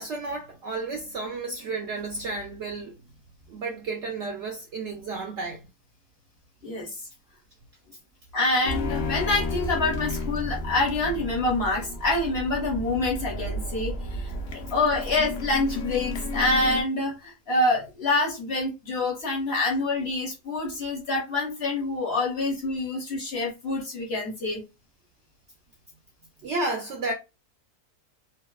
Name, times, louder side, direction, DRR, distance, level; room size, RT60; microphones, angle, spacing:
voice 1, 0.0-3.0 3.5-5.7 26.4-27.1, right 3 dB, 70° right, 0.7 m, -32 dB
voice 2, 6.6-7.0 8.3-24.6, left 2 dB, 50° left, 0.9 m, -26 dB
sound 1, 8.6-16.8, left 2 dB, 70° left, 0.5 m, -32 dB
2.6 x 2.4 x 2.2 m
omnidirectional pair, 1.6 m